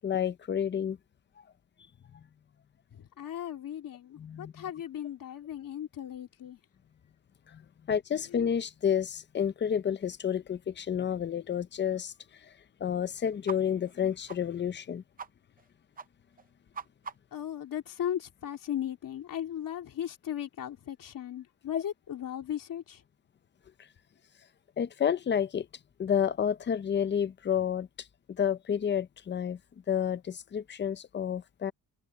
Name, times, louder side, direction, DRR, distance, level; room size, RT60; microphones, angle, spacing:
voice 1, 0.0-1.0 4.2-4.6 7.5-7.6 7.9-12.1 12.4-12.5 12.8-15.0 21.7-21.8 24.8-25.7 26.0-29.6 29.9-31.7, left 8 dB, 25° left, 0.5 m, -30 dB
voice 2, 2.9-6.6 8.3-8.4 17.3-23.0, left 10 dB, 55° left, 2.9 m, -37 dB
sound 1, 13.5-13.6 13.9-14.0 14.3-14.4 14.7-14.9 15.2-15.3 15.6-15.7 16.0-16.1 16.4-17.4, right 6 dB, 20° right, 0.5 m, -42 dB
wide cardioid pair, 175°, 41 cm